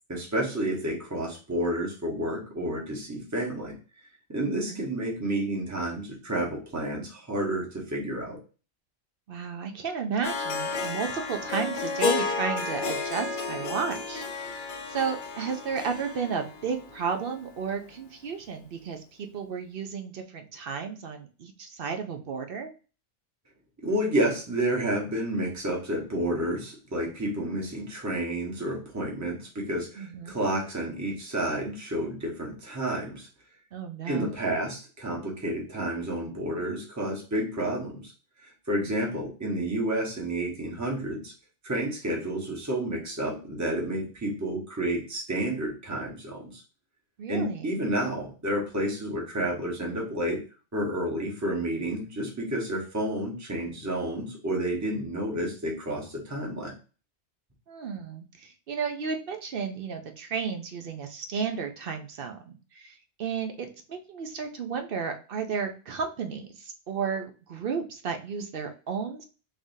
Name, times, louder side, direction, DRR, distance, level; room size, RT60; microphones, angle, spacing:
voice 1, 0.1-3.7 4.3-8.4 23.8-33.3 34.1-38.1 38.4-41.3 41.6-46.6 47.3-50.4 50.7-56.7, right 1 dB, 15° right, -1 dB, 1.0 m, -30 dB
voice 2, 4.4-4.8 9.3-22.7 30.0-30.3 33.7-34.3 47.2-47.7 57.7-69.2, right 6 dB, 60° right, 5 dB, 0.7 m, -33 dB
Harp, 10.2-17.4, left 4 dB, 55° left, 0.6 m, -32 dB
3.6 x 3.5 x 2.6 m, 0.34 s
omnidirectional pair, 1.2 m